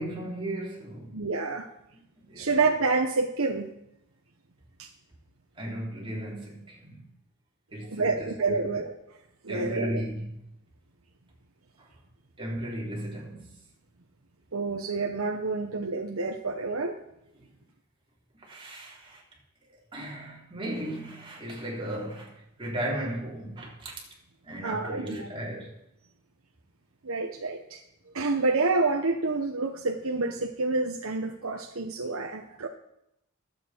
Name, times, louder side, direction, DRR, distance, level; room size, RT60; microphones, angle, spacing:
voice 1, 0.0-1.2 2.3-2.5 5.6-7.1 7.7-8.7 9.5-10.4 11.8-11.9 12.4-13.5 18.4-19.2 19.9-23.9 24.4-25.8, right 1 dB, 25° right, 3.8 m, -36 dB
voice 2, 1.1-1.7 2.4-3.7 4.8-4.9 7.9-8.9 9.4-10.0 14.5-17.0 24.6-25.3 27.0-27.8 28.1-32.7, right 3 dB, 90° right, 1.0 m, -28 dB
20.0 x 8.4 x 4.5 m
head